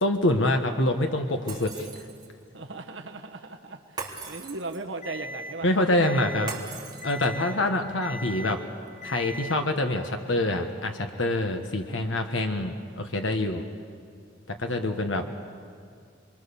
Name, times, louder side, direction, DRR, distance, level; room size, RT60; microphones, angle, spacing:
voice 1, 0.0-1.9 5.6-6.5 7.0-8.6 9.0-13.6 14.5-15.2, left 1 dB, 85° left, 5 dB, 1.4 m, -26 dB
Shatter, 1.5-2.4 4.0-5.0 6.5-7.5, right 4 dB, 25° right, 3.5 m, -39 dB
voice 2, 2.5-6.5 14.6-15.4, right 3 dB, 80° right, 3 dB, 1.5 m, -38 dB
Alarm, 5.0-5.5 6.0-6.5 7.0-7.5 8.0-8.5 9.0-9.5, equal, 40° left, 4.2 m, -38 dB
28.5 x 22.5 x 7.1 m, 2.1 s
head